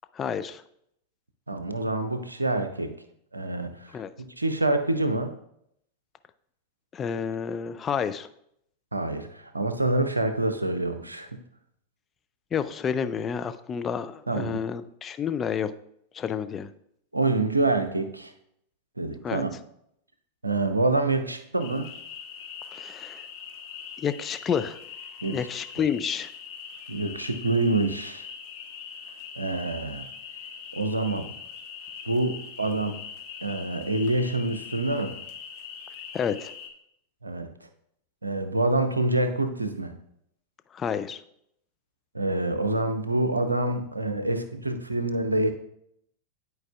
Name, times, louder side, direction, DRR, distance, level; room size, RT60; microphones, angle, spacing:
voice 1, 0.1-0.6 3.9-4.1 6.9-8.3 12.5-15.7 16.1-16.7 19.2-19.4 22.7-23.2 24.0-24.8 25.3-26.3 36.1-36.5 40.7-41.2, left 7 dB, 25° left, 11 dB, 0.4 m, -29 dB
voice 2, 1.5-2.9 3.3-5.3 8.9-11.4 14.3-14.6 17.1-18.3 19.0-19.5 20.4-21.9 25.2-25.5 26.9-28.3 29.4-30.1 30.7-31.3 32.0-33.0 33.4-35.2 37.2-37.5 38.2-39.9 42.1-45.5, right 2 dB, 80° right, 9 dB, 0.6 m, -26 dB
sound 1, 21.6-36.7, left 7 dB, 45° left, 1.1 m, -42 dB
11.5 x 4.6 x 2.3 m, 0.72 s
figure-of-eight pair, 90°, 0 cm